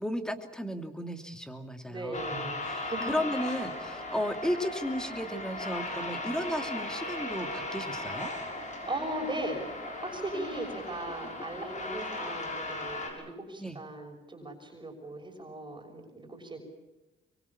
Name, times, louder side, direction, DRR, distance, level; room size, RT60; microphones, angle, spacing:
voice 1, 0.0-8.3 13.6-13.8, equal, 5° left, 7 dB, 2.9 m, -34 dB
voice 2, 1.9-3.0 8.5-9.6 10.0-16.6, right 1 dB, 25° right, 2 dB, 6.2 m, -38 dB
sound 1, 2.1-13.1, left 2 dB, 40° left, 6.6 m, -37 dB
24.5 x 24.0 x 7.2 m, 1.1 s
cardioid pair, 90°, 20 cm